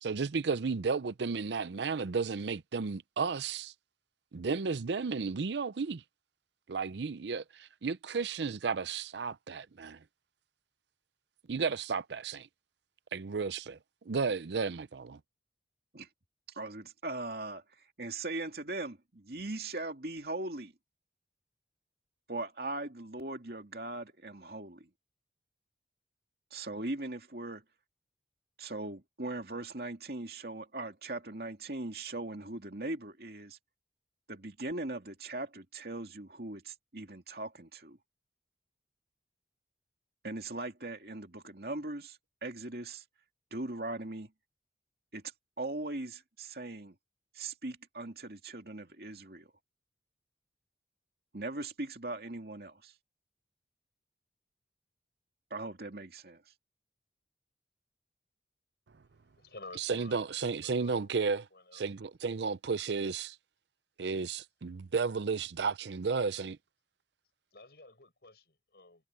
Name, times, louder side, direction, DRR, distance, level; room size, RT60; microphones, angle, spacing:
voice 1, 0.0-3.7 4.3-6.0 6.7-10.0 11.5-12.5 13.1-13.8 14.1-15.2 59.8-61.5 61.7-63.4 64.0-66.6, right 5 dB, 75° right, 0.6 m, -33 dB
voice 2, 16.5-20.7 22.3-24.9 26.5-27.6 28.6-33.6 34.3-38.0 40.2-43.0 43.5-44.3 45.1-45.2 45.6-47.0 47.3-49.5 51.3-52.9 55.5-56.4, right 2 dB, 60° right, 2.7 m, -40 dB
voice 3, 59.3-61.2 61.5-61.8 67.5-69.1, left 2 dB, 65° left, 7.3 m, -52 dB
head